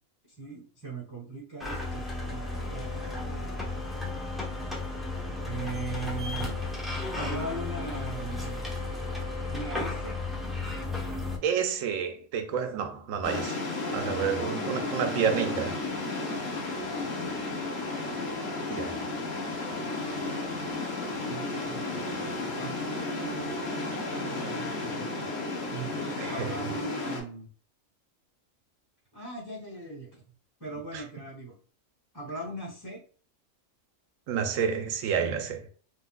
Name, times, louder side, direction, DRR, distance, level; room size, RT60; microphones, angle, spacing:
voice 1, 0.4-2.4 2.7-3.5 5.4-6.6 7.1-8.7 9.5-10.1 12.5-12.7 21.3-22.1 22.4-25.3 25.7-27.5 29.1-30.2 30.6-31.5 32.1-33.0, right 3 dB, 15° right, 1.0 m, -39 dB
sound 1, 1.6-11.4, left 2 dB, ahead, 0.5 m, -34 dB
voice 2, 11.4-13.6 13.9-15.8 18.7-19.0 26.2-26.5 30.9-31.0 34.3-35.7, right 7 dB, 75° right, 1.0 m, -29 dB
sound 2, 13.2-27.2, left 3 dB, 65° left, 1.3 m, -33 dB
3.7 x 2.7 x 2.2 m
omnidirectional pair, 1.4 m